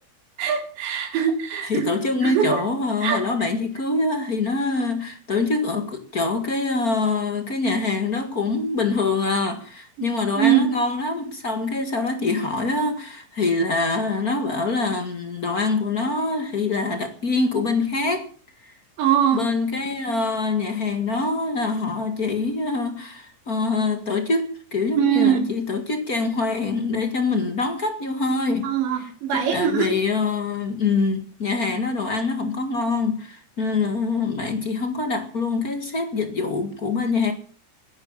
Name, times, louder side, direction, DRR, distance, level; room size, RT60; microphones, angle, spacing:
voice 1, 0.4-1.9 2.2-2.6 3.0-3.5 10.0-10.7 19.0-19.5 25.0-25.5 28.6-29.9, right 9 dB, 90° right, 5.1 m, -22 dB
voice 2, 1.6-18.3 18.6-18.7 19.3-28.7 29.0-37.3, left 3 dB, 45° left, 1.1 m, -24 dB
18.5 x 10.5 x 7.2 m
omnidirectional pair, 4.9 m